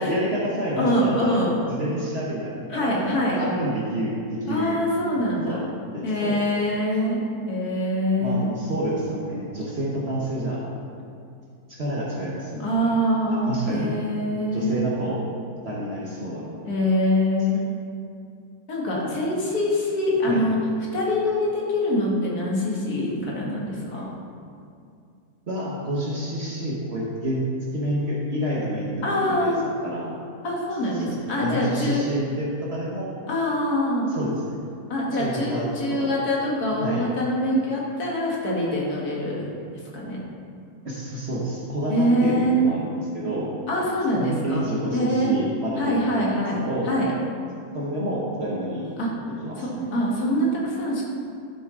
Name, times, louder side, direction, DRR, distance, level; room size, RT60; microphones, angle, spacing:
voice 1, 0.0-1.4 1.7-4.8 5.4-5.6 5.9-6.4 8.2-10.6 11.7-12.9 13.3-13.9 14.5-15.2 15.6-16.6 20.2-20.4 25.5-27.4 27.7-29.5 29.8-30.1 30.9-31.1 31.4-33.2 34.1-34.6 35.1-36.1 36.8-37.0 40.8-43.5 44.1-46.9 47.7-48.9 49.4-49.9, right 1 dB, 45° right, -6 dB, 1.4 m, -29 dB
voice 2, 0.8-1.6 2.7-3.4 4.5-5.6 6.0-8.5 12.6-14.9 16.6-17.7 18.7-20.6 20.9-24.1 29.0-29.6 30.4-32.0 33.3-34.1 34.9-39.5 39.9-40.2 41.9-42.6 43.7-44.6 44.9-45.3 45.8-46.6 46.9-47.1 49.0-49.1 49.6-51.0, equal, 90° left, -4 dB, 2.2 m, -24 dB
11.5 x 6.9 x 3.8 m, 2.4 s
omnidirectional pair, 1.6 m